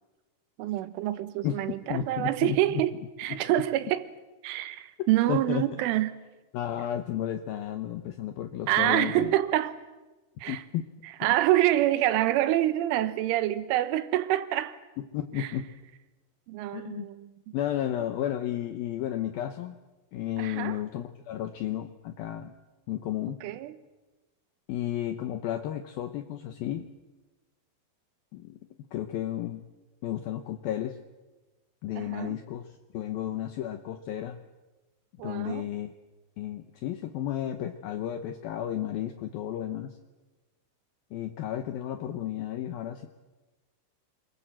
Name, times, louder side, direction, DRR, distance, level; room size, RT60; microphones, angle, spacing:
voice 1, 0.6-2.9 3.2-4.1 4.4-6.1 8.7-9.8 10.4-10.6 11.2-14.8 15.4-15.5 16.5-17.6 20.4-20.8 23.4-23.8 32.0-32.4 35.2-35.7, right 14 dB, 80° right, 3.5 m, -26 dB
voice 2, 1.4-2.8 3.3-3.4 5.3-5.6 6.5-9.3 10.5-10.8 15.0-15.7 16.7-17.1 17.5-19.8 20.1-22.5 22.9-23.4 24.7-26.9 28.3-28.6 28.9-29.6 30.0-31.0 31.8-34.4 35.2-35.9 36.4-40.0 41.1-43.1, left 11 dB, 75° left, 2.2 m, -33 dB
28.5 x 22.0 x 7.7 m
omnidirectional pair, 5.8 m